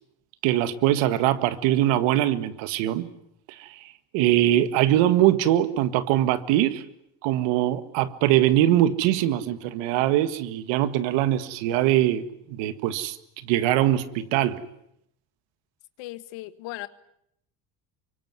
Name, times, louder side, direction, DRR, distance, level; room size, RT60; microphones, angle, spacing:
voice 1, 0.4-3.1 3.6-3.8 4.1-6.8 7.2-13.2 13.5-14.6, right 13 dB, 85° right, 1.9 m, -22 dB
voice 2, 16.0-16.9, left 17 dB, 85° left, 1.7 m, -37 dB
24.5 x 23.5 x 9.6 m
cardioid pair, 105°, 44 cm